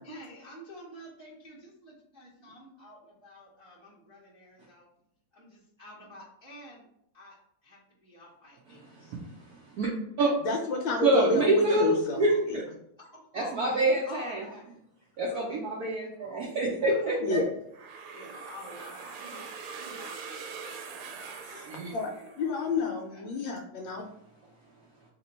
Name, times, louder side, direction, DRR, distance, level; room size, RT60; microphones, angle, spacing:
voice 1, 0.0-4.8 5.3-6.9 7.1-7.4 7.6-9.1 13.0-13.7 14.1-14.6 15.3-15.6 16.9-17.2 18.1-19.4 19.7-22.6 23.1-23.2, left 1 dB, 25° right, -7 dB, 0.5 m, -49 dB
voice 2, 10.4-12.6 17.2-17.5 21.4-22.1 22.4-24.0, left 3 dB, 75° left, 2 dB, 1.1 m, -30 dB
voice 3, 11.0-12.6 13.3-14.4 15.2-17.4 21.6-21.9, right 1 dB, 70° right, -4 dB, 0.9 m, -26 dB
sound 1, 17.7-22.6, right 5 dB, 85° right, 1.5 m, -43 dB
3.2 x 3.0 x 4.2 m, 0.74 s
omnidirectional pair, 2.4 m